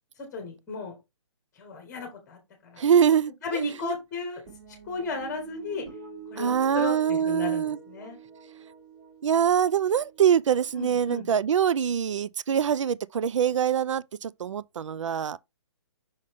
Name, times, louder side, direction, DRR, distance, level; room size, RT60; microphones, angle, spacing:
voice 1, 0.2-1.0 1.6-2.8 3.4-4.4 4.9-5.8 6.3-8.2 10.8-11.3, left 4 dB, 10° left, 1.1 m, -35 dB
voice 2, 2.8-3.9 6.4-7.8 9.2-15.4, right 8 dB, 85° right, 0.4 m, -24 dB
sound 1, 4.5-11.0, right 5 dB, 20° right, 3.0 m, -46 dB
5.5 x 5.0 x 3.4 m
hypercardioid pair, 175°, 15 cm